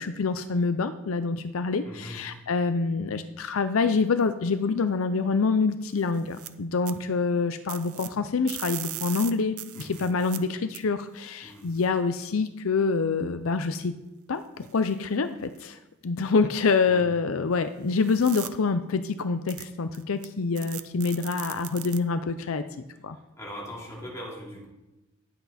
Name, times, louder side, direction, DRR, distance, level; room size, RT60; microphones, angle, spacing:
voice 1, 0.0-13.9 14.3-15.8 16.0-22.6 23.0-23.2, left 4 dB, 75° left, 11 dB, 0.5 m, -26 dB
voice 2, 1.8-2.2 9.7-10.0 11.4-11.7 16.9-17.0 23.4-24.6, equal, 15° left, -4 dB, 2.9 m, -40 dB
sound 1, 6.0-6.5 6.9-7.0 7.7-8.1 8.5-10.4 10.7-10.8 11.7-11.9 14.6-14.9 15.6-15.7 18.0-18.5 19.5-19.6 19.9-20.3 20.6-22.0, right 14 dB, 85° right, 0.6 m, -38 dB
11.0 x 8.1 x 4.2 m, 0.99 s
head